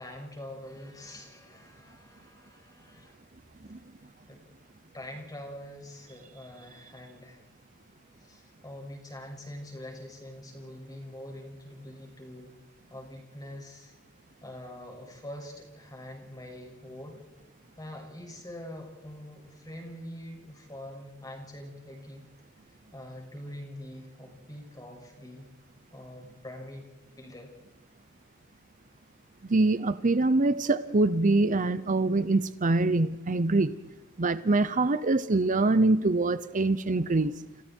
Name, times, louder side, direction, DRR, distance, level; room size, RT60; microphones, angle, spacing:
voice 1, 0.0-3.1 4.3-4.4 4.9-7.4 8.2-12.5 12.9-13.9 14.4-17.2 17.8-22.2 22.9-25.4 25.9-26.8 27.2-27.5, left 1 dB, 20° left, 1 dB, 6.5 m, -44 dB
voice 2, 29.5-33.8 34.2-37.3, right 2 dB, 40° right, 13 dB, 0.7 m, -24 dB
30.0 x 28.0 x 4.6 m, 1.3 s
head